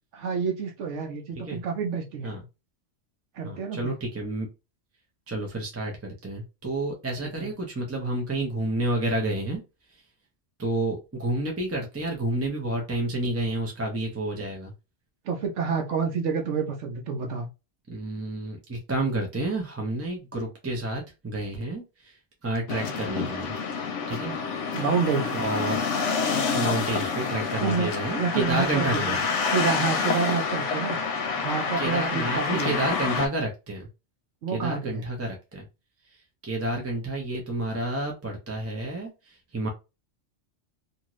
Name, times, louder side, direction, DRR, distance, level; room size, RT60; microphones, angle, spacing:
voice 1, 0.1-2.4 3.3-3.9 7.2-7.5 15.2-17.5 24.7-25.4 27.6-27.9 28.1-29.2 29.5-31.0 31.4-32.8 34.4-35.0, right 5 dB, 75° right, 3 dB, 0.9 m, -28 dB
voice 2, 3.4-4.5 5.3-9.6 10.6-14.7 17.9-22.2 22.4-23.5 24.1-24.4 25.4-25.8 26.5-29.2 31.8-33.9 34.5-35.6 36.4-39.7, right 1 dB, 15° right, 0 dB, 0.5 m, -30 dB
sound 1, 22.7-33.3, left 5 dB, 90° left, 0.9 m, -28 dB
2.7 x 2.4 x 3.0 m, 0.27 s
omnidirectional pair, 1.2 m